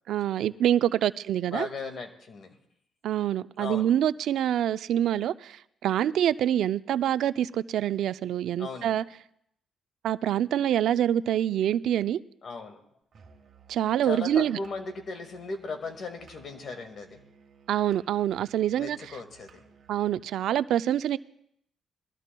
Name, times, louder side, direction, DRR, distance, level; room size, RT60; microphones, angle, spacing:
voice 1, 0.1-1.7 3.0-9.0 10.0-12.2 13.7-14.6 17.7-19.2 19.9-21.2, right 11 dB, 75° right, 15 dB, 0.4 m, -26 dB
voice 2, 1.5-2.6 3.6-3.9 8.6-9.0 12.4-12.8 14.0-17.2 18.8-19.6, left 4 dB, 55° left, 6 dB, 1.8 m, -37 dB
Musical instrument, 13.1-20.2, right 6 dB, 55° right, 1.3 m, -57 dB
21.5 x 13.5 x 2.2 m, 0.72 s
cardioid pair, 90°, 0 cm